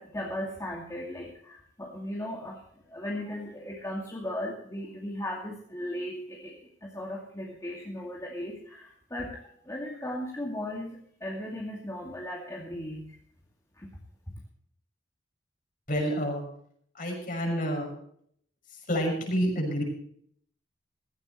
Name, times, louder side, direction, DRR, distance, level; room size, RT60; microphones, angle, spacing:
voice 1, 0.0-2.6 2.9-13.2 13.8-13.9, left 1 dB, 15° left, -2 dB, 2.2 m, -37 dB
voice 2, 15.9-16.4 16.9-17.9 18.7-19.8, equal, 45° left, 1 dB, 6.1 m, -28 dB
16.5 x 15.5 x 3.2 m, 0.65 s
head